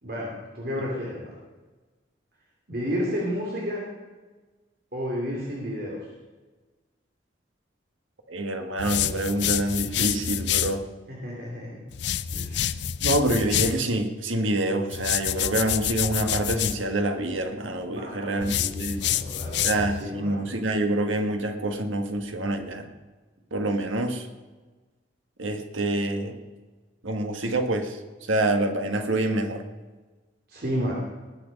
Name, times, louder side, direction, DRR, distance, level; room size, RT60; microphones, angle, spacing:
voice 1, 0.0-1.3 2.7-3.8 4.9-6.1 11.1-11.8 12.3-12.8 17.9-20.5 30.5-30.9, equal, 50° right, -3 dB, 2.8 m, -32 dB
voice 2, 8.3-10.8 13.0-19.0 19.6-22.9 23.5-24.3 25.4-26.4 27.0-28.0 28.3-29.6, right 1 dB, 85° right, 6 dB, 1.6 m, -26 dB
sound 1, 8.8-10.8 11.9-13.8 14.9-16.8 18.4-20.0, left 10 dB, 60° left, 0.5 m, -27 dB
19.5 x 8.8 x 5.3 m, 1.3 s
head